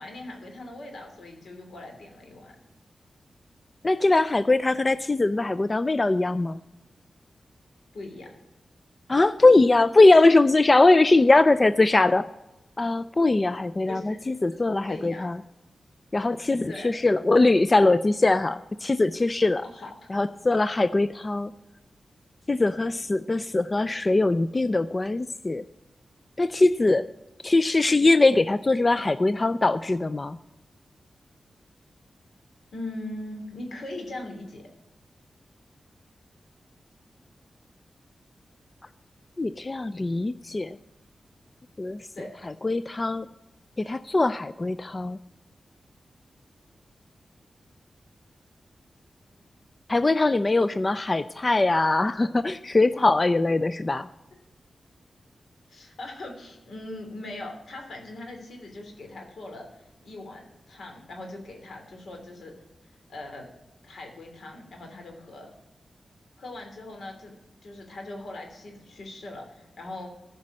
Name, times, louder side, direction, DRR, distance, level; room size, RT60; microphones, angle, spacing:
voice 1, 0.0-2.6 7.9-8.3 13.9-14.2 14.5-15.3 16.7-16.9 19.6-19.9 32.7-34.6 42.1-42.3 55.7-62.5 63.1-63.4 63.8-65.5 66.4-67.4 67.6-70.1, left 2 dB, 80° left, 3 dB, 3.0 m, -40 dB
voice 2, 3.8-6.6 9.1-12.3 12.8-15.4 16.1-19.6 20.1-21.5 22.5-25.6 26.4-27.1 27.4-30.4 39.4-40.8 41.8-42.0 42.6-43.3 43.8-45.2 49.9-54.1, left 2 dB, 30° left, 14 dB, 0.4 m, -21 dB
14.5 x 5.3 x 7.3 m, 0.98 s
wide cardioid pair, 95°, 0 cm